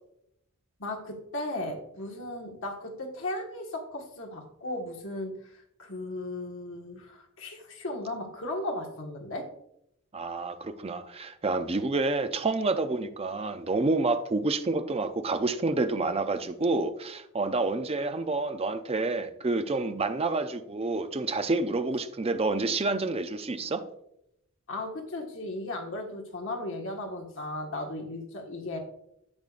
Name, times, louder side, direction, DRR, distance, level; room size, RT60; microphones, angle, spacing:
voice 1, 0.8-9.5 24.7-28.8, left 1 dB, 60° left, 1.6 m, -36 dB
voice 2, 10.1-23.8, right 3 dB, 25° right, 0.5 m, -28 dB
10.5 x 6.7 x 2.5 m
head